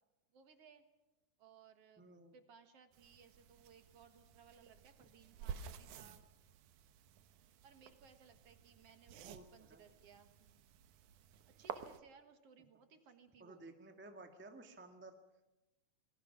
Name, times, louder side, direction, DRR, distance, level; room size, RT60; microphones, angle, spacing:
voice 1, 0.3-0.9 1.4-6.2 7.6-10.9 11.5-13.7, right 6 dB, 55° right, 8 dB, 2.3 m, -63 dB
voice 2, 2.0-2.3 9.2-9.4 9.7-9.8 13.4-15.1, right 2 dB, 5° right, 5 dB, 0.8 m, -55 dB
sound 1, 2.9-12.0, right 8 dB, 85° right, 2.5 m, -52 dB
28.0 x 20.0 x 6.0 m, 1.0 s
omnidirectional pair, 3.4 m